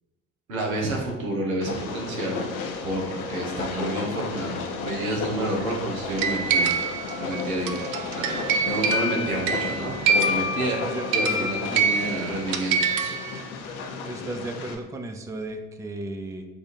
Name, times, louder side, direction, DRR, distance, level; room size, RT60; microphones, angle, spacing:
voice 1, 0.5-6.7 7.2-7.9 8.1-13.1, right 1 dB, 85° right, 0 dB, 0.9 m, -30 dB
Train, 1.6-14.7, left 4 dB, 80° left, 0.6 m, -34 dB
sound 1, 6.2-13.4, right 4 dB, 60° right, 0.6 m, -25 dB
voice 2, 10.6-12.2 14.0-16.5, right 1 dB, 10° right, 6 dB, 0.4 m, -35 dB
4.9 x 2.5 x 4.1 m, 1.1 s
hypercardioid pair, 50°, 41 cm